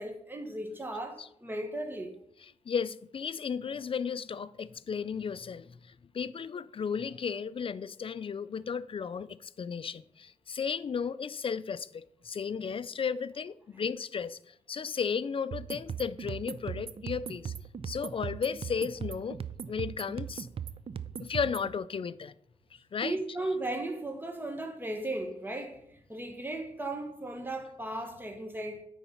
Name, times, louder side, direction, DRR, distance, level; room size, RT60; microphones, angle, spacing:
voice 1, 0.0-2.1 23.0-28.8, right 2 dB, 15° right, 1.4 m, -36 dB
voice 2, 2.7-17.5 17.8-19.4 19.7-20.5 21.2-22.3 22.7-23.2, left 6 dB, 45° left, 0.4 m, -34 dB
sound 1, 15.5-21.7, right 7 dB, 45° right, 0.5 m, -39 dB
9.1 x 4.0 x 5.6 m
cardioid pair, 55°, 13 cm